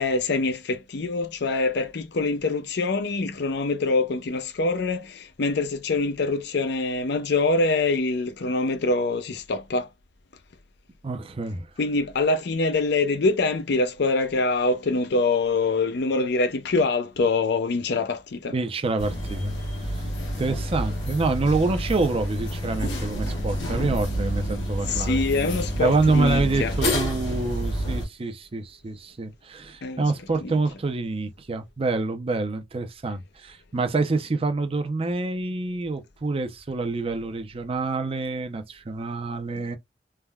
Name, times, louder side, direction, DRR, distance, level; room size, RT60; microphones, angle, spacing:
voice 1, 0.0-9.9 11.8-18.5 24.9-26.7 29.8-30.0 30.4-30.5, left 3 dB, 65° left, 0.5 m, -24 dB
voice 2, 11.0-11.7 18.5-19.5 19.9-20.0 20.4-25.2 25.8-39.8, right 3 dB, 30° right, 0.5 m, -27 dB
sound 1, 19.0-28.1, equal, 85° left, 1.1 m, -29 dB
3.3 x 2.2 x 2.2 m
head